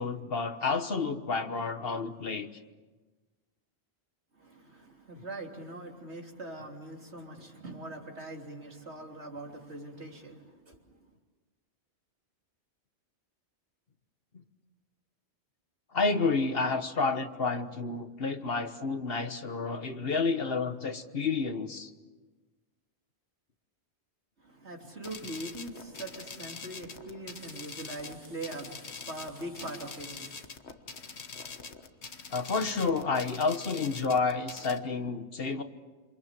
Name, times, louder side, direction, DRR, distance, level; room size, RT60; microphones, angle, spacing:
voice 1, 0.0-2.5 15.9-21.9 32.3-35.6, left 4 dB, 60° left, 9 dB, 1.5 m, -30 dB
voice 2, 4.4-10.8 24.4-30.5, right 1 dB, 80° right, 1 dB, 3.6 m, -42 dB
sound 1, 25.0-34.8, left 5 dB, 80° left, 1.7 m, -44 dB
28.0 x 27.0 x 7.6 m, 1.3 s
omnidirectional pair, 1.1 m